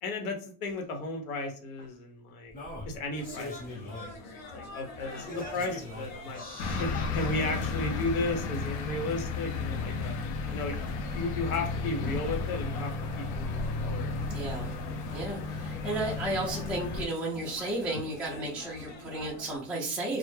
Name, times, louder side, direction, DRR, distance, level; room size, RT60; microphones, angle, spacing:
voice 1, 0.0-2.5 2.9-6.4 6.8-10.1 10.5-10.8 11.1-14.1, left 2 dB, 90° left, 3 dB, 0.9 m, -35 dB
Singing, 0.7-0.8 1.8-1.9 2.5-4.1 4.6-4.7 5.1-7.7 8.5-8.6, left 2 dB, 20° left, 0.8 m, -42 dB
sound 1, 3.1-19.6, left 3 dB, 40° left, 1.2 m, -47 dB
sound 2, 6.6-17.1, left 4 dB, 55° left, 0.6 m, -33 dB
voice 2, 14.3-14.7 15.1-20.2, right 2 dB, 5° right, -5 dB, 0.4 m, -33 dB
2.2 x 2.0 x 3.2 m, 0.43 s
supercardioid pair, 135°, 41 cm